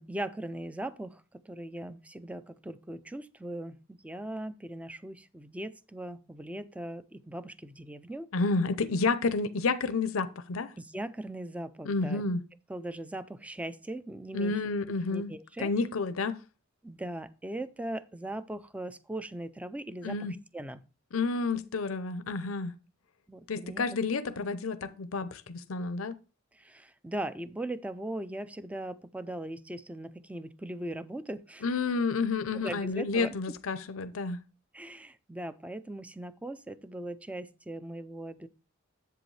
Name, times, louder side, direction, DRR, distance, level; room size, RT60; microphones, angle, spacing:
voice 1, 0.0-8.3 10.8-12.2 12.7-14.5 15.1-15.7 16.8-20.2 20.5-20.8 23.3-23.9 26.5-31.7 32.5-33.4 34.7-38.5, right 1 dB, 5° right, 0.4 m, -39 dB
voice 2, 8.3-10.7 11.8-12.4 14.3-15.3 15.6-16.4 20.0-20.3 21.1-22.7 23.5-26.1 31.6-34.4, left 4 dB, 85° left, 0.6 m, -30 dB
7.8 x 7.7 x 3.2 m
head